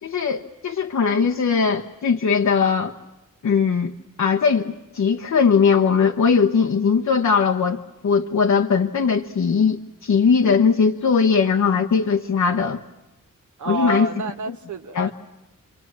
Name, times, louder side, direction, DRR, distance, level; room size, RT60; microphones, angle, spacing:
voice 1, 0.0-3.0 3.4-3.9 4.2-7.8 8.0-12.8 13.6-14.1 14.5-14.6 14.9-15.1, left 5 dB, 65° left, 2 dB, 1.1 m, -19 dB
voice 2, 13.6-15.1, right 3 dB, 65° right, 6 dB, 1.5 m, -29 dB
29.5 x 24.5 x 7.4 m, 1.0 s
wide cardioid pair, 155°, 33 cm